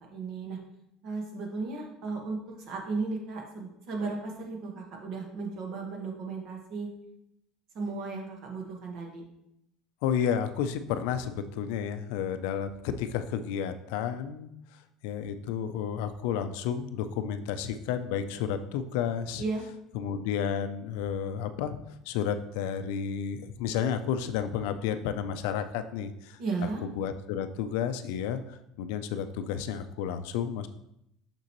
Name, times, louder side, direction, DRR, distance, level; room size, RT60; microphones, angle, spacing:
voice 1, 0.1-0.6 1.0-2.4 2.7-6.9 7.7-9.2 19.4-19.7 26.4-26.8, right 4 dB, 45° right, 1 dB, 1.4 m, -35 dB
voice 2, 10.0-14.5 15.0-19.4 19.9-21.8 22.1-26.4 27.0-30.7, left 8 dB, 80° left, 10 dB, 0.5 m, -31 dB
6.5 x 6.0 x 3.0 m, 0.80 s
cardioid pair, 170°, 0 cm